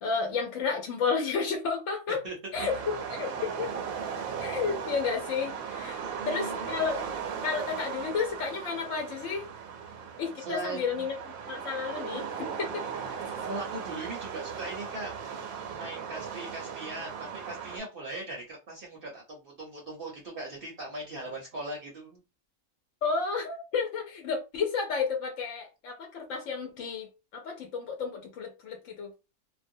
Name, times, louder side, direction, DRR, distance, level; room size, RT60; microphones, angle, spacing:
voice 1, 0.0-2.2 2.5-3.3 3.6-3.7 4.4-7.0 7.4-9.5 10.2-11.1 11.5-12.8 23.0-29.1, left 5 dB, 70° left, 1 dB, 0.9 m, -32 dB
sound 1, 2.5-17.8, right 7 dB, 90° right, 1.0 m, -37 dB
voice 2, 6.0-6.7 10.4-11.1 13.4-15.1 15.6-22.2, right 2 dB, 55° right, -1 dB, 0.7 m, -39 dB
2.4 x 2.0 x 2.6 m, 0.28 s
omnidirectional pair, 1.4 m